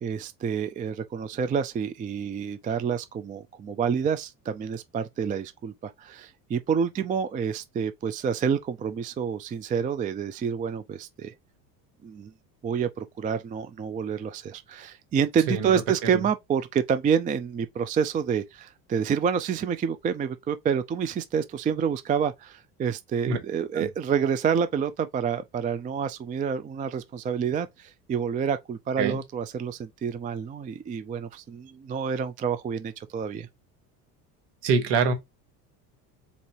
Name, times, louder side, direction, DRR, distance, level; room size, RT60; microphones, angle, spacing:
voice 1, 0.0-11.3 12.0-12.3 12.6-33.5, right 7 dB, 20° right, 0.3 m, -28 dB
voice 2, 15.5-15.8 16.1-16.2 23.3-23.4 23.7-23.9 29.0-29.2 34.6-35.1, right 5 dB, 55° right, 1.6 m, -24 dB
4.1 x 2.6 x 4.6 m
hypercardioid pair, 75°, 49 cm